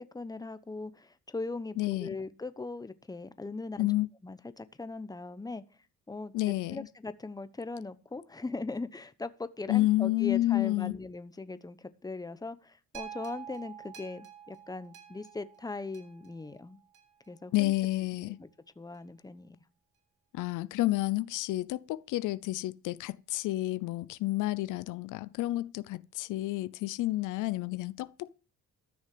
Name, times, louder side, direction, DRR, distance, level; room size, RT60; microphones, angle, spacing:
voice 1, 0.0-3.9 4.2-5.6 6.1-16.8 17.3-17.7 18.2-18.5 18.8-19.6, left 3 dB, 10° left, 1.0 m, -40 dB
voice 2, 1.8-2.1 3.8-4.1 6.3-6.9 9.7-11.0 17.5-18.4 20.3-28.3, left 17 dB, 85° left, 0.6 m, -30 dB
sound 1, 12.9-17.3 17.9-18.0, right 9 dB, 80° right, 3.5 m, -48 dB
13.5 x 6.2 x 7.7 m
cardioid pair, 90°, 30 cm